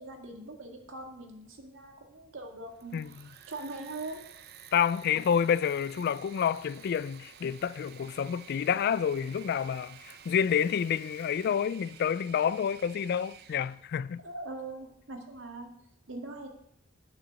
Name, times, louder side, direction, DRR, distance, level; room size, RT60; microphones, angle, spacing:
voice 1, 0.0-4.2 14.2-15.7 16.1-16.5, right 2 dB, 70° right, 2.0 m, -42 dB
Engine / Mechanisms, 2.6-13.8, right 8 dB, 55° right, 0.6 m, -52 dB
voice 2, 4.7-14.2, left 8 dB, 55° left, 0.3 m, -29 dB
9.5 x 7.0 x 6.6 m
head